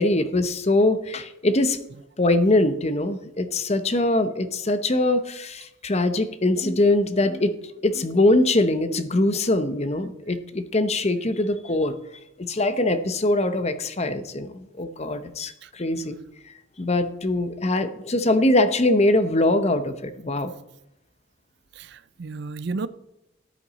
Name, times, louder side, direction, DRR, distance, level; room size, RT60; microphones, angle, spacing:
voice 1, 0.0-1.8 2.2-7.5 7.8-11.9 12.4-16.2 16.8-20.6, left 2 dB, 30° left, 0.8 m, -22 dB
voice 2, 21.7-22.9, right 3 dB, 55° right, 0.5 m, -32 dB
13.5 x 8.6 x 4.1 m
head